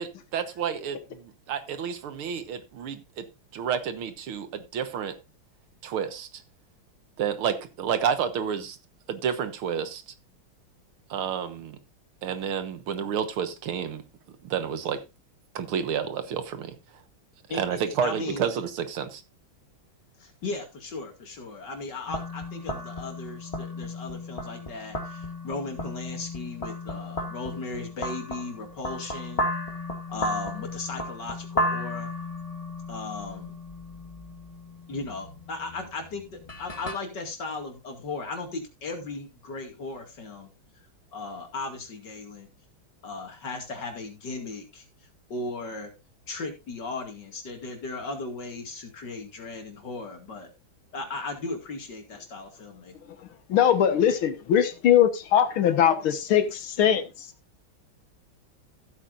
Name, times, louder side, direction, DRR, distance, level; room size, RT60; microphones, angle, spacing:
voice 1, 0.0-3.3 3.5-5.2 5.8-6.3 7.2-8.8 9.1-10.0 11.1-11.8 12.2-14.0 14.4-15.0 15.6-16.8 17.5-19.2, right 7 dB, 80° right, 10 dB, 2.1 m, -30 dB
voice 2, 17.5-18.5 20.2-29.5 30.1-32.1 32.9-33.5 34.9-40.5 41.1-42.5 43.0-44.8 45.3-45.9 46.3-50.5 50.9-52.9, left 3 dB, 55° left, 4 dB, 2.9 m, -36 dB
sound 1, 22.1-36.9, left 1 dB, 20° left, 1.5 m, -34 dB
voice 3, 53.5-57.3, left 9 dB, 80° left, 10 dB, 2.1 m, -21 dB
15.0 x 8.6 x 2.6 m, 0.24 s
omnidirectional pair, 2.3 m